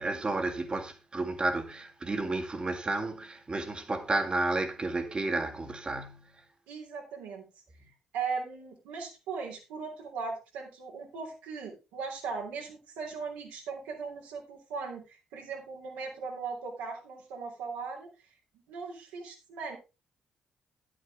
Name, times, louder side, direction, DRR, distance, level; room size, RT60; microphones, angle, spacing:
voice 1, 0.0-6.4 7.8-7.9, right 2 dB, 35° right, 2.2 m, -32 dB
voice 2, 6.7-7.5 8.1-18.1 18.7-19.8, right 5 dB, 75° right, 3.2 m, -38 dB
11.0 x 9.1 x 3.6 m
hypercardioid pair, 40°, 3 cm